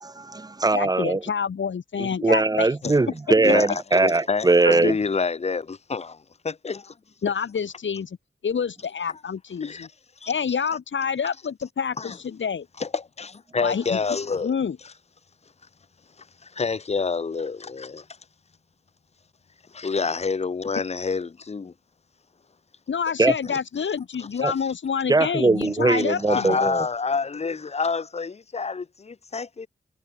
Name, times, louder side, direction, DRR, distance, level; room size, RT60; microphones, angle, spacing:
voice 1, 0.2-1.2 2.0-4.9 23.2-23.3 24.4-24.5 25.1-26.8, right 3 dB, 20° right, 0.5 m, -21 dB
voice 2, 0.7-2.7 7.2-8.2 8.4-9.9 10.3-12.7 13.6-14.0 14.4-14.8 22.9-26.6, left 6 dB, 75° left, 1.9 m, -27 dB
voice 3, 3.4-6.2 6.4-6.9 9.6-9.9 10.2-10.3 12.0-12.2 12.8-14.6 16.4-18.1 19.7-21.7 23.4-23.6 24.2-24.4 25.7-29.7, left 4 dB, 35° left, 0.7 m, -28 dB
wide cardioid pair, 150°, 20 cm